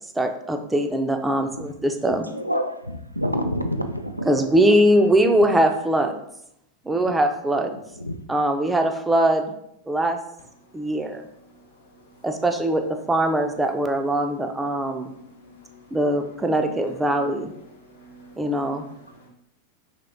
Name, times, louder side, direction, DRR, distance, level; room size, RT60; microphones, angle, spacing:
voice 1, 0.2-2.3 4.3-6.2 6.9-7.7 8.3-9.5 9.9-10.2 10.7-11.2 12.2-15.1 15.9-17.5 18.4-18.8, right 1 dB, 10° right, 5 dB, 0.4 m, -21 dB
voice 2, 2.3-4.3 8.0-8.2, equal, 90° right, 6 dB, 0.3 m, -27 dB
voice 3, 11.8-12.2 14.9-16.0 17.1-17.2 17.7-19.3, right 2 dB, 75° left, -2 dB, 1.0 m, -50 dB
3.0 x 2.9 x 3.7 m, 0.77 s
figure-of-eight pair, 90°, 0 cm